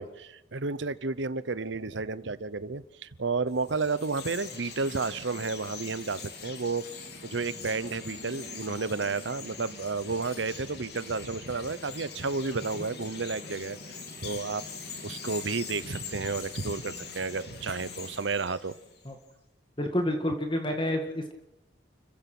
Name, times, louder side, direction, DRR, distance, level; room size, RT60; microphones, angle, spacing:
voice 1, 0.0-6.8 7.2-13.8 14.2-14.7 15.0-18.7, right 4 dB, 80° right, 16 dB, 0.9 m, -32 dB
Chirp tweet, 3.5-19.1, left 5 dB, 60° left, 3.7 m, -43 dB
voice 2, 19.8-21.3, left 1 dB, 25° left, 5 dB, 1.8 m, -29 dB
29.5 x 15.5 x 6.1 m, 0.84 s
head